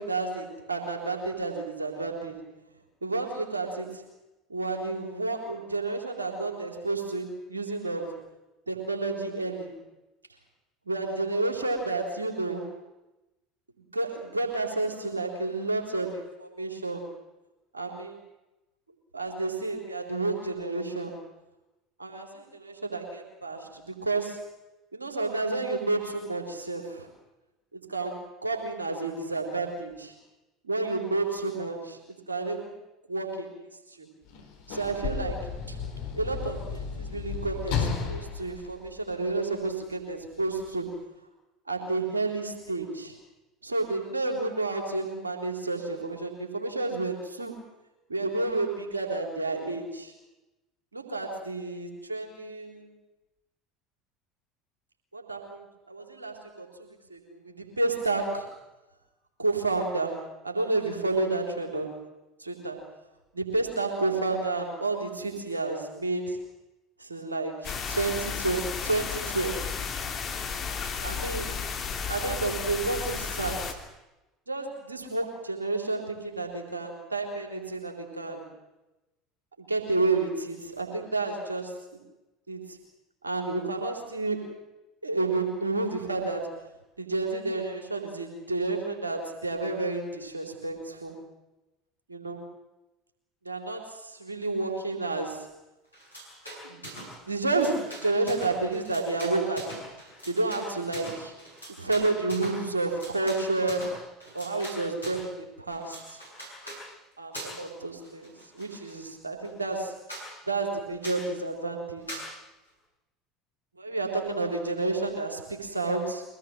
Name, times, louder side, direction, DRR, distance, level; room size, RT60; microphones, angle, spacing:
voice 1, 0.0-2.5 3.0-4.0 4.5-8.2 8.7-9.8 10.9-12.7 13.9-17.1 17.7-18.2 19.1-21.2 22.0-24.4 24.9-27.1 27.7-30.1 30.6-32.0 32.3-32.7 33.1-34.1 34.7-35.8 36.1-40.9 41.7-43.1 43.6-47.6 48.1-50.1 50.9-52.9 55.1-58.5 59.4-62.0 62.4-62.9 63.3-66.4 67.0-69.6 71.0-71.6 72.1-73.8 74.5-78.5 79.6-82.0 82.5-82.8 83.2-84.5 85.0-86.6 87.0-91.2 92.1-92.4 93.4-95.5 96.6-96.9 97.2-99.8 100.3-101.3 101.8-104.0 104.3-106.2 107.2-110.0 110.5-112.3 113.8-116.2, right 3 dB, 85° right, 3 dB, 3.9 m, -30 dB
Sliding door / Slam, 34.2-39.6 40.5-40.7, left 6 dB, 65° left, 3.9 m, -33 dB
sound 1, 67.6-73.7, left 6 dB, 40° left, 3.2 m, -33 dB
sound 2, 95.9-97.2 97.4-105.3 105.7-106.8 107.3-107.7 108.0-109.0 109.4-109.5 109.8-109.9 110.1-110.3 111.0-111.3 112.1-112.3, right 1 dB, 90° left, 6.9 m, -42 dB
24.0 x 19.0 x 8.0 m, 0.99 s
figure-of-eight pair, 70°, 0 cm